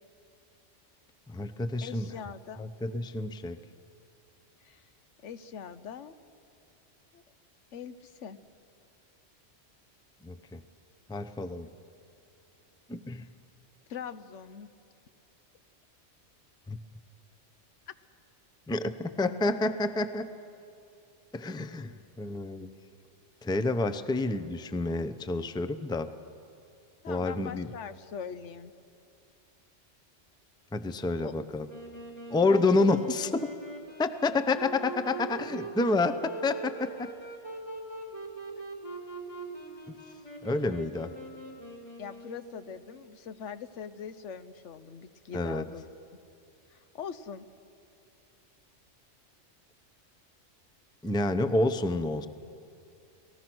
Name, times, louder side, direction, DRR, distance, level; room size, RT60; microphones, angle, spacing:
voice 1, 1.3-2.1 2.6-3.6 10.2-10.6 11.1-11.7 12.9-13.3 16.7-16.8 18.7-20.3 21.3-22.7 23.4-26.1 27.1-27.7 30.7-31.7 32.3-33.5 34.0-37.1 40.4-41.1 45.3-45.7 51.0-52.3, left 2 dB, 5° left, 10 dB, 0.5 m, -29 dB
voice 2, 1.8-2.7 4.6-4.8 5.2-6.1 7.1-7.2 7.7-8.4 13.9-14.7 27.0-28.7 31.2-31.3 32.4-32.6 42.0-45.8 46.7-47.5, left 7 dB, 80° left, 13 dB, 1.2 m, -42 dB
Wind instrument woodwind instrument, 31.7-42.8, right 2 dB, 35° left, 2.7 m, -42 dB
29.0 x 19.0 x 6.2 m, 2.5 s
omnidirectional pair, 1.2 m